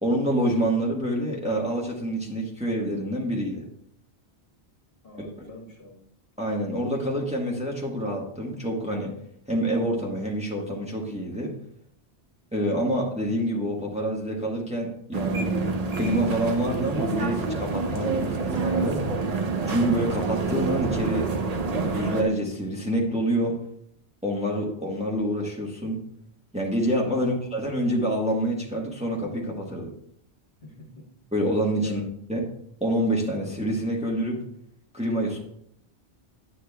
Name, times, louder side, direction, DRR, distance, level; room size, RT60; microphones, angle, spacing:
voice 1, 0.0-3.7 5.4-5.5 6.4-9.1 9.5-11.6 12.5-15.5 15.9-19.0 19.6-21.3 21.8-23.6 24.2-26.0 26.5-29.9 31.3-32.0 32.3-32.5 32.8-34.4 34.9-35.4, right 1 dB, 5° right, -2 dB, 1.2 m, -27 dB
voice 2, 5.0-6.0 30.6-31.1 31.8-32.1, left 3 dB, 60° left, -1 dB, 1.6 m, -44 dB
sound 1, 15.1-22.2, right 3 dB, 40° right, 0.7 m, -27 dB
9.9 x 8.4 x 2.2 m, 0.70 s
omnidirectional pair, 1.1 m